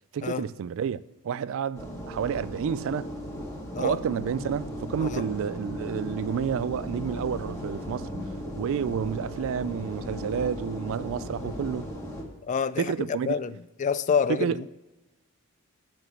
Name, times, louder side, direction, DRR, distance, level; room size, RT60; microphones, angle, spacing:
voice 1, 0.1-3.1 3.8-8.1 8.6-11.9 12.8-13.6 14.3-14.6, right 7 dB, 60° right, 0.3 m, -30 dB
sound 1, 1.7-12.2, equal, 15° left, 2.0 m, -37 dB
voice 2, 12.5-12.9 13.3-14.7, left 6 dB, 35° left, 0.3 m, -27 dB
9.9 x 6.0 x 6.9 m
head